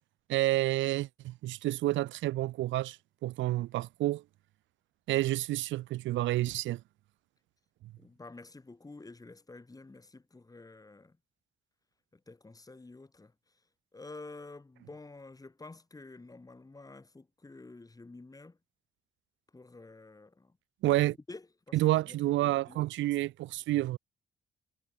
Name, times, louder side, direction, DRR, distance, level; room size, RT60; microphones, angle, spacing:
voice 1, 0.3-3.0 3.2-4.2 5.1-6.8 20.8-21.2 21.7-24.0, right 16 dB, 70° right, 0.4 m, -29 dB
voice 2, 8.0-11.2 12.1-13.6 13.9-18.6 19.5-20.6 21.3-22.9, left 3 dB, 20° left, 2.2 m, -50 dB
cardioid pair, 90°, 20 cm